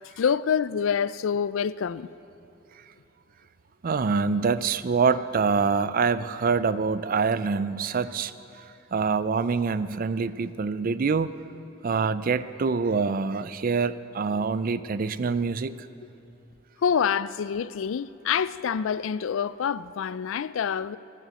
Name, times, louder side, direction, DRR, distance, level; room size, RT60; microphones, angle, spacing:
voice 1, 0.0-2.1 16.8-21.0, left 7 dB, 75° left, 0.4 m, -26 dB
voice 2, 3.8-8.6 8.9-11.3 11.8-15.8, right 5 dB, 45° right, 0.4 m, -25 dB
15.5 x 11.0 x 7.6 m
head